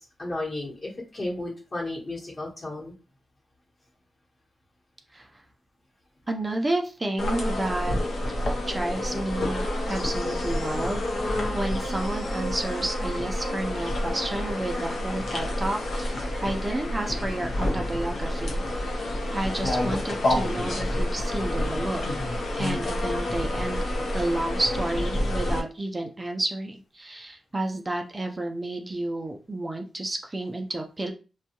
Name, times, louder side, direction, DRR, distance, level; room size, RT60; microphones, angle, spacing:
voice 1, 0.2-2.9, left 2 dB, 40° left, -6 dB, 1.0 m, -33 dB
voice 2, 6.3-8.0 8.7-18.6 19.3-22.0 22.5-23.8 24.1-31.1, right 1 dB, 25° right, 3 dB, 0.4 m, -31 dB
sound 1, 7.2-25.6, left 1 dB, 75° left, 0.6 m, -28 dB
2.6 x 2.2 x 2.8 m, 0.33 s
wide cardioid pair, 100°, 0 cm